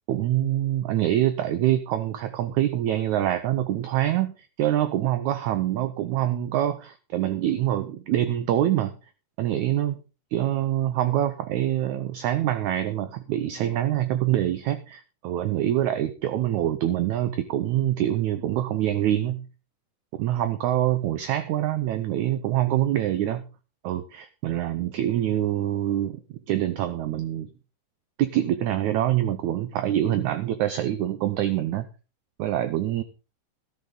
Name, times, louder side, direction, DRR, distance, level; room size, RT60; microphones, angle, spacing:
voice 1, 0.1-8.9 9.4-10.0 10.3-19.5 20.2-23.4 23.8-26.2 26.5-27.5 28.2-31.9 32.4-33.0, right 12 dB, 75° right, 11 dB, 1.8 m, -25 dB
13.0 x 12.0 x 3.9 m, 0.33 s
omnidirectional pair, 4.0 m